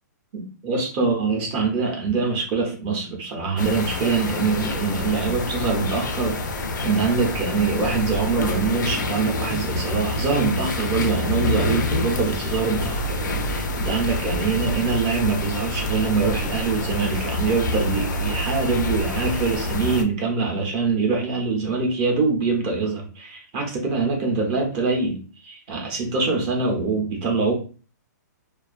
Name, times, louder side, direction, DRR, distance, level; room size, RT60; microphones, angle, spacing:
voice 1, 0.3-6.5 6.8-27.5, right 4 dB, 30° right, 1 dB, 0.6 m, -24 dB
sound 1, 3.6-20.0, left 2 dB, 90° left, 0.5 m, -27 dB
2.3 x 2.3 x 2.4 m, 0.38 s
hypercardioid pair, 155°, 10 cm